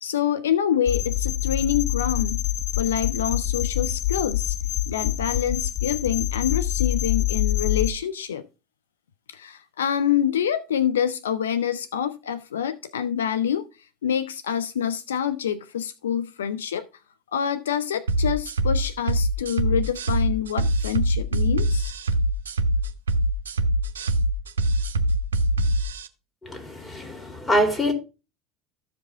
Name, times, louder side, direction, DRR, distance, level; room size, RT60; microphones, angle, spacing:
voice 1, 0.0-2.4 2.8-4.6 4.9-8.5 9.3-13.7 14.0-16.9 17.3-21.9, left 9 dB, 80° left, 0.4 m, -26 dB
sound 1, 0.9-7.9, left 13 dB, 55° left, 0.9 m, -25 dB
sound 2, 18.1-26.1, right 1 dB, 85° right, 0.6 m, -23 dB
voice 2, 26.4-27.9, equal, 15° left, 2.9 m, -24 dB
14.0 x 5.0 x 3.4 m
hypercardioid pair, 75°, 0 cm